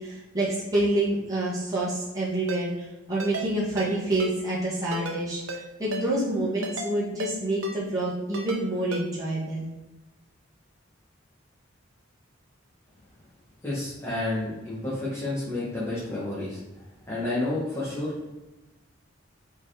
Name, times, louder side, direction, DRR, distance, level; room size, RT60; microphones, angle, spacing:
voice 1, 0.0-2.7 3.1-9.6, right 1 dB, 20° right, -9 dB, 2.2 m, -27 dB
Ringtone, 2.5-2.6 3.2-3.5 3.8-3.9 4.2-4.3 4.9-5.2 5.5-5.6 5.9-6.1 6.6-6.9 7.2-7.3 7.6-7.8 8.3-8.6 8.9-9.0, right 1 dB, 85° right, 1.0 m, -33 dB
voice 2, 13.6-16.6 17.1-18.1, left 2 dB, 15° left, -10 dB, 2.0 m, -30 dB
5.2 x 4.6 x 5.1 m, 1.1 s
head